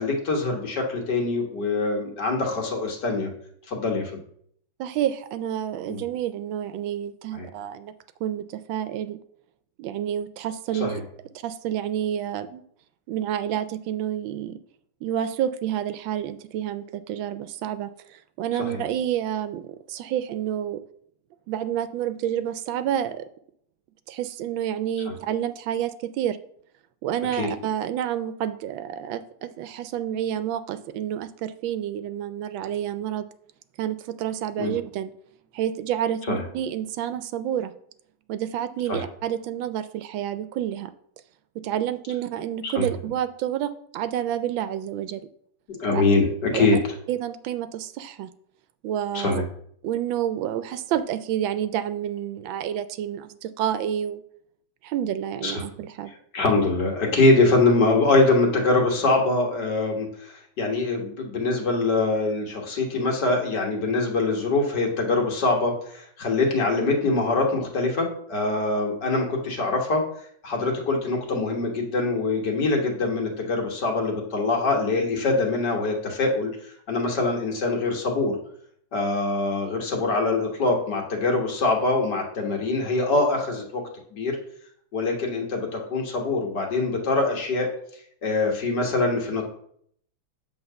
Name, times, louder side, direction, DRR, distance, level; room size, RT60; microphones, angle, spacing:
voice 1, 0.0-3.3 3.7-4.2 5.9-6.0 7.3-7.5 10.8-11.0 18.7-18.8 25.1-25.2 27.4-27.5 34.6-34.7 36.3-36.4 38.9-39.0 42.6-42.9 45.7-46.8 49.1-49.4 55.4-55.6 56.3-70.0 70.4-78.4 78.9-83.8 84.1-84.4 84.9-87.7 88.2-89.4, left 3 dB, 60° left, 0 dB, 2.0 m, -24 dB
voice 2, 4.8-7.9 8.2-9.2 9.8-11.0 11.4-12.6 13.1-14.6 15.0-20.8 21.5-23.2 24.1-26.4 27.0-33.3 33.8-35.1 35.5-37.7 38.3-40.9 41.5-45.2 45.9-46.0 46.5-46.7 47.1-48.3 48.8-49.4 49.8-54.2 54.8-56.1, right 10 dB, 80° right, 12 dB, 1.3 m, -29 dB
8.1 x 3.6 x 6.7 m, 0.65 s
omnidirectional pair, 2.2 m